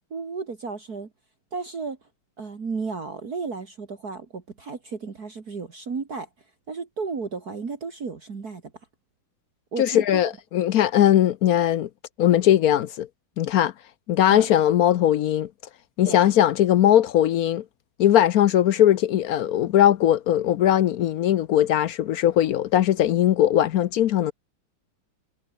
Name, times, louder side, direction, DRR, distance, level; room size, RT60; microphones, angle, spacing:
voice 1, 0.1-1.1 1.5-2.0 2.4-6.3 6.7-8.7 9.7-10.2 14.3-14.5 16.0-16.3, right 4 dB, 50° right, 2.8 m, -33 dB
voice 2, 9.8-11.9 12.2-13.1 13.4-13.7 14.1-15.5 16.0-17.6 18.0-24.3, left 11 dB, 70° left, 0.9 m, -19 dB
omnidirectional pair, 2.2 m